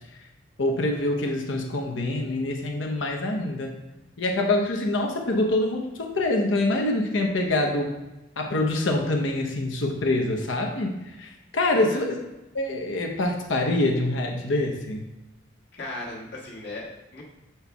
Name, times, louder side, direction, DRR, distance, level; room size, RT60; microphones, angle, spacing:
voice 1, 0.6-3.7 4.2-7.9 8.4-10.9 11.2-12.2 12.5-15.0, left 2 dB, 80° left, 2 dB, 0.9 m, -25 dB
voice 2, 11.7-12.0 15.7-17.2, left 2 dB, 60° left, -3 dB, 1.5 m, -37 dB
7.0 x 4.5 x 3.5 m, 1.0 s
head